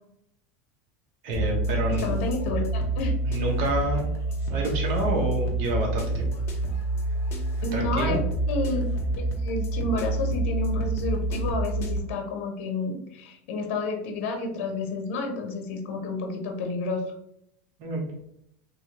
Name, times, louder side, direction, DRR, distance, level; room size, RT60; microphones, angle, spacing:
voice 1, 1.2-2.1 3.2-4.1 4.5-6.3 7.7-8.2 17.8-18.0, right 1 dB, 55° right, 0 dB, 1.3 m, -28 dB
sound 1, 1.3-12.0, right 2 dB, 35° left, 0.8 m, -27 dB
voice 2, 1.9-3.2 7.6-8.2 8.5-8.8 9.2-17.0, left 3 dB, 65° left, 3 dB, 0.9 m, -30 dB
3.3 x 3.1 x 2.9 m, 0.75 s
supercardioid pair, 145°, 7 cm